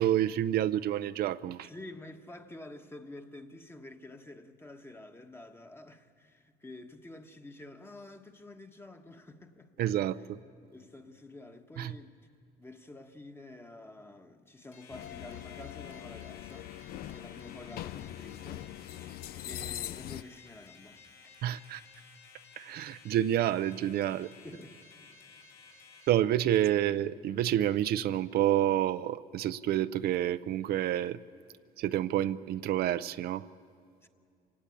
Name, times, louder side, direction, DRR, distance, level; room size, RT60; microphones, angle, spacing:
voice 1, 0.0-1.7 9.8-10.4 11.8-11.9 21.4-21.8 22.6-24.3 26.1-31.2 31.8-33.5, right 12 dB, 65° right, 0.5 m, -29 dB
voice 2, 1.5-9.8 10.7-12.1 12.6-16.7 17.1-21.0 24.4-24.8 34.0-34.1, left 2 dB, 15° left, 1.3 m, -49 dB
sound 1, 14.7-26.1, left 5 dB, 80° left, 4.9 m, -55 dB
sound 2, 14.9-20.2, left 13 dB, 65° left, 0.5 m, -42 dB
26.5 x 17.5 x 8.5 m
cardioid pair, 110°, 17 cm